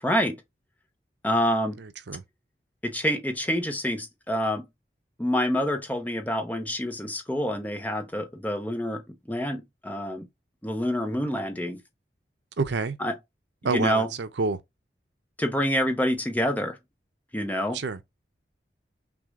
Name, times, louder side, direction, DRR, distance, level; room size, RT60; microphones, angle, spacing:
voice 1, 0.0-0.4 1.2-1.8 2.8-4.6 5.2-9.0 9.3-10.3 10.6-11.8 13.0-13.2 13.6-14.1 15.4-16.8 17.3-17.8, equal, 10° left, 0.7 m, -27 dB
voice 2, 12.6-13.0 13.6-14.6 17.7-18.0, right 4 dB, 80° right, 0.6 m, -27 dB
6.1 x 2.3 x 3.6 m
head